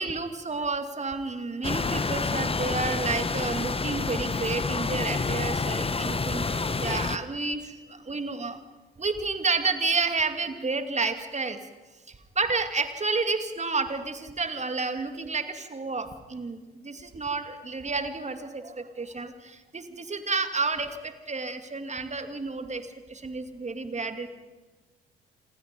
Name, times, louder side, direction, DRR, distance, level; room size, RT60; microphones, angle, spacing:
voice 1, 0.0-8.6 9.0-11.6 12.1-24.3, right 4 dB, 25° right, 9 dB, 2.6 m, -30 dB
sound 1, 1.6-7.2, left 4 dB, 20° left, 1.3 m, -28 dB
27.5 x 22.0 x 5.4 m, 1.2 s
figure-of-eight pair, 50°, 29 cm